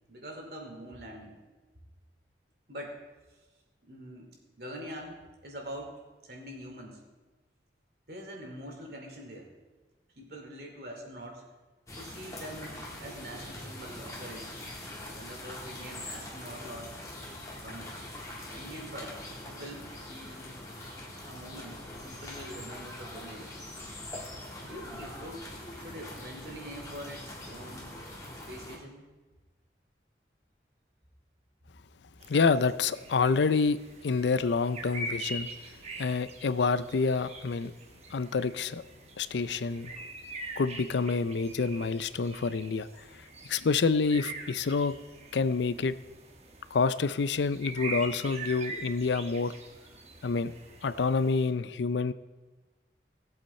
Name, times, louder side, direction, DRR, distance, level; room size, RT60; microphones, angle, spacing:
voice 1, 0.1-1.4 2.7-3.0 3.8-4.3 4.6-5.9 6.2-7.0 8.1-9.5 10.2-11.4 11.9-14.5 15.1-17.4 17.6-17.9 18.5-20.6 21.2-23.6 24.6-25.4 25.8-27.9 28.5-29.0, equal, 60° right, 1 dB, 2.7 m, -44 dB
sound 1, 11.9-28.8, left 1 dB, 20° left, 1.9 m, -43 dB
sound 2, 32.2-51.5, right 2 dB, 35° right, 1.2 m, -44 dB
voice 2, 32.3-33.8 34.0-35.5 36.0-37.7 38.1-38.8 39.2-39.9 40.6-42.9 43.5-44.9 45.3-45.9 46.7-49.5 50.2-50.5 50.8-52.1, left 4 dB, 80° left, 15 dB, 0.5 m, -27 dB
18.0 x 8.1 x 4.3 m, 1.2 s
head